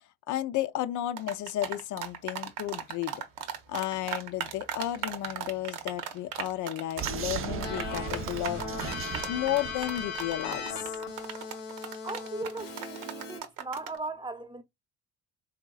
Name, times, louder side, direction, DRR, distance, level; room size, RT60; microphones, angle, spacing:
voice 1, 0.3-3.2 3.7-8.6 9.3-10.8, left 13 dB, 60° left, 0.5 m, -33 dB
sound 1, 1.2-14.0, right 9 dB, 80° right, 0.8 m, -37 dB
Keyboard (musical), 7.0-13.4, left 4 dB, 85° left, 1.1 m, -38 dB
Vehicle, 7.0-10.9, right 7 dB, 40° right, 0.5 m, -38 dB
voice 2, 12.0-14.6, right 2 dB, 15° right, 0.7 m, -38 dB
3.8 x 2.8 x 2.3 m
supercardioid pair, 65°, 34 cm